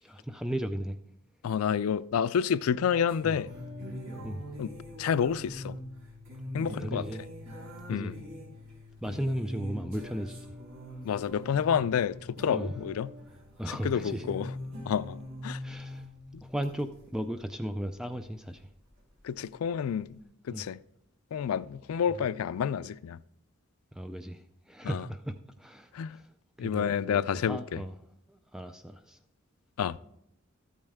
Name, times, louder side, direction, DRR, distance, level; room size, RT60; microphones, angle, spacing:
voice 1, 0.0-1.0 3.2-3.4 4.2-4.4 6.7-7.2 7.9-8.1 9.0-10.5 12.5-12.7 13.6-14.2 15.6-16.1 16.4-18.7 20.5-20.6 22.1-22.2 23.9-26.3 26.6-28.0 28.3-29.2, equal, 5° right, 0.3 m, -36 dB
voice 2, 1.4-3.5 4.6-4.7 5.0-5.8 6.5-7.0 7.9-8.1 11.0-13.1 13.7-14.5 14.9-15.2 15.4-15.6 19.2-20.2 20.5-20.8 21.3-23.2 24.8-25.0 25.9-26.2 26.6-27.8 29.8-30.0, left 7 dB, 80° left, 0.3 m, -29 dB
sound 1, 3.1-17.1 18.5-18.6 19.7-19.9, left 1 dB, 70° right, 4.3 m, -42 dB
13.5 x 8.6 x 3.5 m
head